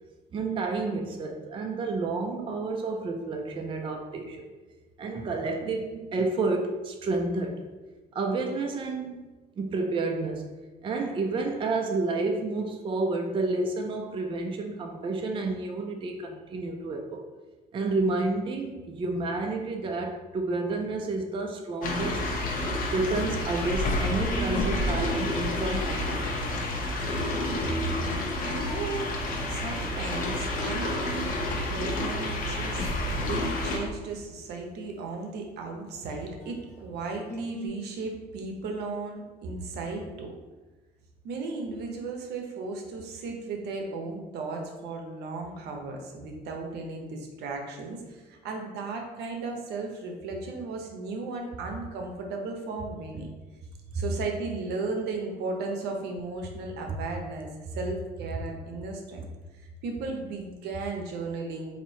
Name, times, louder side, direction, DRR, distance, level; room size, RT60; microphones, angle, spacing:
voice 1, 0.3-4.4 5.0-7.6 8.1-9.2 9.6-10.5 10.8-17.2 17.7-22.2 22.8-26.3 53.9-54.0, right 3 dB, 30° right, 3 dB, 0.4 m, -30 dB
sound 1, 21.8-33.8, left 1 dB, 55° left, 0.8 m, -29 dB
sound 2, 23.2-23.9 24.3-26.5 27.1-29.5 29.8-29.9 30.3-30.4 31.9-32.0 32.4-32.5 36.1-36.8 37.3-37.7, right 4 dB, 15° left, 1.4 m, -41 dB
voice 2, 28.5-29.1 29.5-31.4 31.6-40.4 41.2-53.3 53.9-59.3 59.6-61.8, right 3 dB, 75° right, 2 dB, 0.7 m, -35 dB
2.9 x 2.7 x 4.2 m, 1.2 s
cardioid pair, 110°, 17 cm